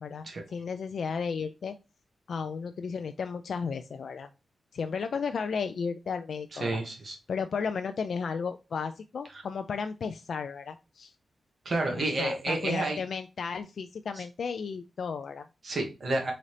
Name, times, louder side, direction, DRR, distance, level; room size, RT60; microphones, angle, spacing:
voice 1, 0.0-1.7 2.3-4.3 4.7-6.8 7.3-11.1 11.9-15.5, left 5 dB, 65° left, 8 dB, 0.3 m, -34 dB
voice 2, 6.6-7.2 11.6-13.0 15.6-16.3, right 2 dB, 45° right, 2 dB, 1.4 m, -29 dB
4.1 x 3.8 x 3.2 m, 0.28 s
wide cardioid pair, 155°, 0 cm